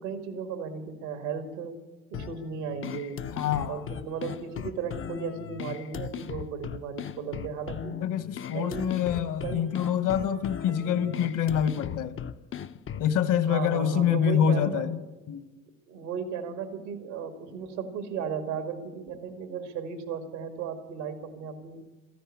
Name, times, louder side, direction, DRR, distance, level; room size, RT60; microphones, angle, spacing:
voice 1, 0.0-1.8 2.1-3.2 3.7-8.0 8.5-9.0 9.4-9.7 10.7-11.0 13.4-14.9 15.9-21.8, right 6 dB, 80° right, 2.1 m, -35 dB
sound 1, 2.1-13.1, left 8 dB, 35° left, 0.7 m, -38 dB
voice 2, 3.3-3.8 8.0-12.2 13.0-15.0 15.3-15.5, left 9 dB, 60° left, 1.4 m, -26 dB
14.5 x 10.0 x 9.8 m
hypercardioid pair, 55°, 36 cm